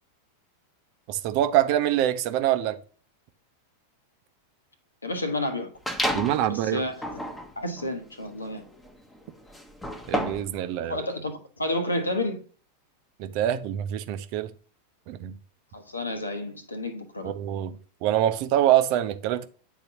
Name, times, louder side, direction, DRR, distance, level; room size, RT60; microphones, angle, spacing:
voice 1, 1.1-2.8 6.1-6.8 10.1-11.0 13.2-14.5 15.1-15.3 17.2-17.7 18.0-19.4, right 12 dB, 45° right, 0.6 m, -25 dB
voice 2, 5.0-5.7 6.5-7.0 7.6-8.6 10.9-12.4 15.7-17.4, left 1 dB, 80° left, 1.1 m, -30 dB
sound 1, 5.9-6.5 6.9-10.6, equal, 5° left, 0.9 m, -31 dB
9.1 x 4.0 x 2.8 m
figure-of-eight pair, 90°, 0 cm